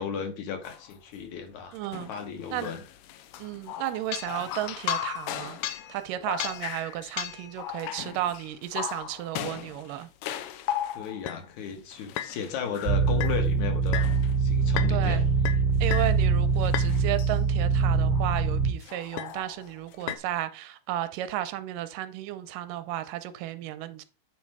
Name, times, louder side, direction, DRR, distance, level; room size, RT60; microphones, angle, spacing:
voice 1, 0.0-1.8 2.1-2.8 11.0-14.1 14.4-15.3, left 7 dB, 65° left, 2.3 m, -35 dB
sound 1, 0.6-0.9 1.8-11.4 11.9-13.4 13.9-14.4 14.8-15.2 15.4-16.2 16.6-17.3 18.1-18.4 18.8-20.2, left 11 dB, 85° left, 2.3 m, -36 dB
voice 2, 1.7-2.1 2.5-2.7 3.4-5.6 5.9-10.1 14.9-15.3 15.8-24.1, right 13 dB, 80° right, 2.3 m, -33 dB
sound 2, 12.9-18.7, right 4 dB, 55° right, 1.3 m, -24 dB
8.8 x 4.2 x 4.8 m
omnidirectional pair, 3.9 m